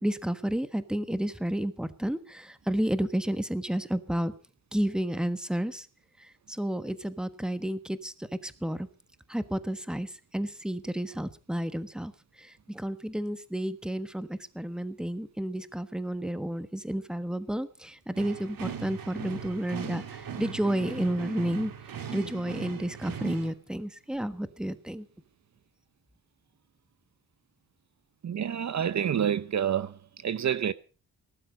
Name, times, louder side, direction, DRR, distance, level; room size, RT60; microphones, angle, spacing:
voice 1, 0.0-4.3 4.7-5.9 6.2-8.9 9.3-12.1 12.4-21.7 22.1-25.0, right 1 dB, ahead, 1.3 m, -31 dB
sound 1, 18.1-23.5, right 8 dB, 80° right, 2.4 m, -39 dB
voice 2, 28.2-29.9 30.2-30.7, right 9 dB, 55° right, 0.8 m, -28 dB
19.0 x 12.0 x 5.3 m
wide cardioid pair, 110°, 34 cm